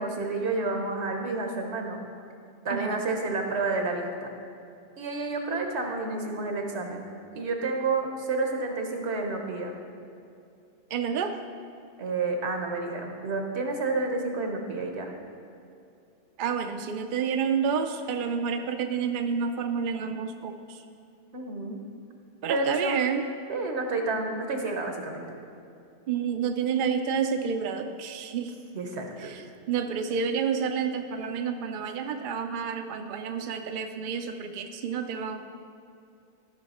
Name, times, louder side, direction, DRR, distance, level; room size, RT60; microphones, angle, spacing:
voice 1, 0.0-2.0 2.6-4.3 5.0-7.1 7.3-9.7 12.0-15.1 21.3-21.8 22.5-23.0 23.5-25.2 28.7-29.3, right 3 dB, 75° right, 3 dB, 1.3 m, -30 dB
voice 2, 2.7-3.0 10.9-11.4 16.4-20.8 22.4-23.2 26.1-28.6 29.2-35.4, right 6 dB, 60° right, 6 dB, 0.6 m, -29 dB
13.5 x 5.6 x 4.2 m, 2.5 s
omnidirectional pair, 1.1 m